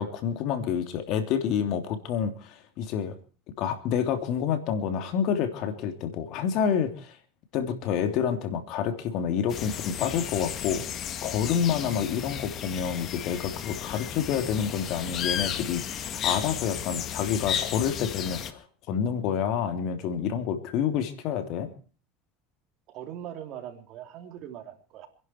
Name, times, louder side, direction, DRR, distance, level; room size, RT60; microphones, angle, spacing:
voice 1, 0.0-3.2 3.6-7.2 7.5-21.7, left 8 dB, 60° left, 8 dB, 3.1 m, -28 dB
sound 1, 9.5-18.5, left 9 dB, 45° left, 1.8 m, -34 dB
voice 2, 22.9-25.1, right 10 dB, 55° right, 6 dB, 3.4 m, -41 dB
27.5 x 11.0 x 4.6 m, 0.40 s
supercardioid pair, 100°, 0 cm